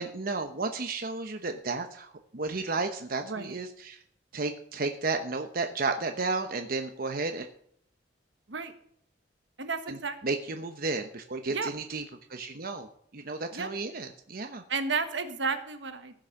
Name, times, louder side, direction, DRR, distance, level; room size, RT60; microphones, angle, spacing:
voice 1, 0.0-4.0 4.3-7.5 9.9-10.0 10.2-12.0 12.3-12.9 13.1-14.6, right 3 dB, 50° right, 5 dB, 0.9 m, -33 dB
voice 2, 3.2-3.5 8.5-8.7 9.6-10.2 11.5-11.7 13.5-13.7 14.7-16.2, right 4 dB, 75° right, 8 dB, 1.4 m, -32 dB
15.5 x 6.4 x 6.5 m, 0.65 s
head